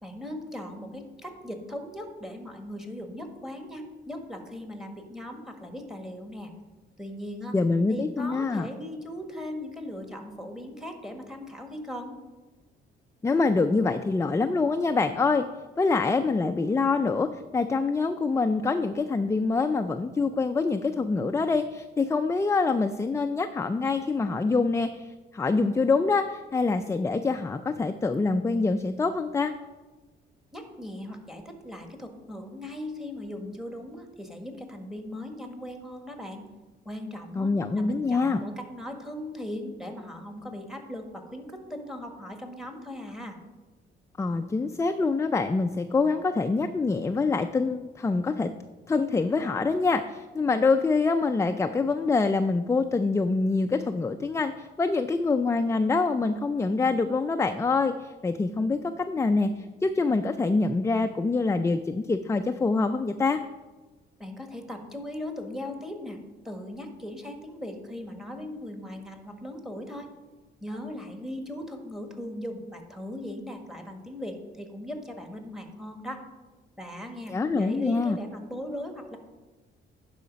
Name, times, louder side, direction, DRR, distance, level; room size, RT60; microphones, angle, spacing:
voice 1, 0.0-6.5 7.0-7.5 7.9-12.2 30.5-36.4 36.8-43.4 64.2-66.2 66.4-70.1 70.6-76.2 76.8-79.2, left 1 dB, ahead, 4 dB, 1.5 m, -38 dB
voice 2, 7.5-8.7 13.2-15.4 15.8-29.5 37.4-38.4 44.2-48.5 48.9-63.4 77.3-78.2, left 3 dB, 15° left, 7 dB, 0.4 m, -25 dB
10.5 x 5.0 x 5.2 m, 1.2 s
cardioid pair, 90°, 20 cm